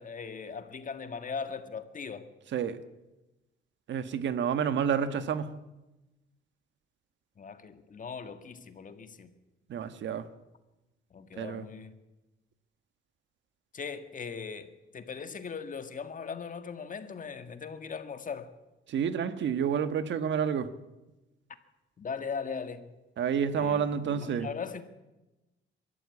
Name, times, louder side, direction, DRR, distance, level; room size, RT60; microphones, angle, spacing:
voice 1, 0.0-2.3 7.4-9.3 11.1-11.9 13.7-18.5 22.0-22.9 23.5-24.8, left 5 dB, 40° left, 1.9 m, -39 dB
voice 2, 3.9-5.5 9.7-10.3 11.4-11.7 18.9-20.7 23.2-24.5, right 7 dB, 65° right, 1.4 m, -29 dB
22.5 x 13.5 x 8.6 m
cardioid pair, 90°, 20 cm